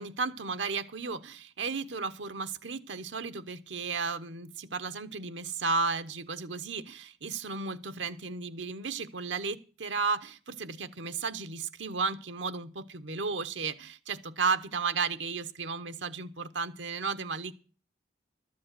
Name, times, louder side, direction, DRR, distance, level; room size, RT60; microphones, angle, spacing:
voice 1, 0.0-17.5, right 4 dB, 90° right, 1.0 m, -34 dB
13.0 x 7.6 x 7.6 m
head